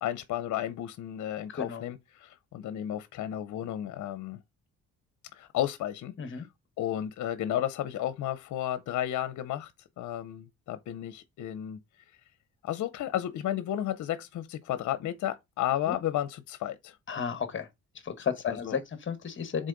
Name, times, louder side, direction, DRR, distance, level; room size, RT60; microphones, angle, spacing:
voice 1, 0.0-4.4 5.3-6.4 6.8-9.7 10.0-11.8 12.6-16.9 18.2-18.8, left 12 dB, 70° left, 0.8 m, -33 dB
voice 2, 1.5-1.9 6.2-6.5 15.9-16.0 17.1-17.7 18.0-19.7, left 6 dB, 40° left, 1.3 m, -33 dB
6.4 x 4.0 x 3.9 m
cardioid pair, 90°, 30 cm